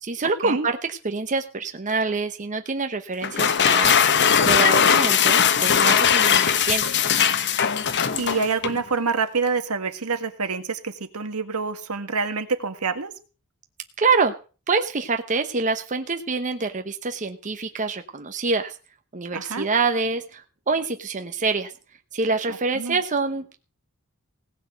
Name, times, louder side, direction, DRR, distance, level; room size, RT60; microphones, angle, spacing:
voice 1, 0.0-4.0 4.4-7.0 14.0-14.3 14.7-18.8 19.1-21.7 22.1-23.6, right 4 dB, 35° right, 6 dB, 0.9 m, -26 dB
sound 1, 3.2-8.8, left 8 dB, 55° left, 0.9 m, -19 dB
voice 2, 8.2-13.1 19.3-19.7 22.8-23.0, right 4 dB, 75° right, 8 dB, 1.8 m, -26 dB
17.5 x 6.0 x 8.0 m, 0.36 s
head